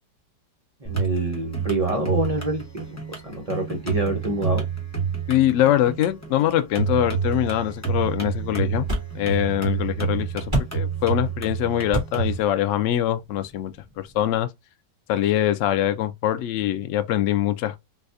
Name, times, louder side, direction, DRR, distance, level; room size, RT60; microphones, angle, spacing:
sound 1, 0.8-12.3, right 6 dB, 15° left, 0.7 m, -29 dB
voice 1, 0.8-4.6, right 1 dB, 60° right, 0.3 m, -27 dB
voice 2, 5.3-8.9 9.1-13.7 14.0-14.5 15.1-17.8, left 12 dB, 80° left, 0.6 m, -23 dB
sound 2, 7.2-14.3, right 1 dB, 20° right, 1.3 m, -34 dB
4.1 x 2.3 x 2.6 m
omnidirectional pair, 1.8 m